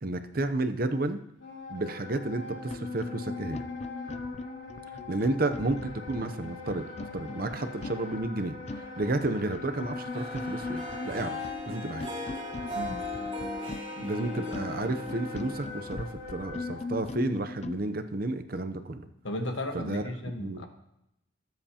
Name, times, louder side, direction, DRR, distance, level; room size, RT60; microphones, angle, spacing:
voice 1, 0.0-1.2 1.7-3.6 5.1-6.9 7.1-11.4 11.7-12.2 14.0-19.0 19.7-20.0 20.4-20.7, right 2 dB, 45° right, 9 dB, 0.7 m, -31 dB
Wind instrument woodwind instrument, 1.4-16.9, left 4 dB, 60° left, 3.8 m, -42 dB
sound 1, 2.3-2.4 2.7-17.8, left 3 dB, 35° left, 0.4 m, -40 dB
Harp, 10.1-16.4, left 1 dB, 25° right, 1.7 m, -39 dB
voice 2, 19.2-20.7, left 1 dB, 75° left, 4 dB, 1.4 m, -35 dB
19.5 x 7.8 x 2.9 m, 0.83 s
head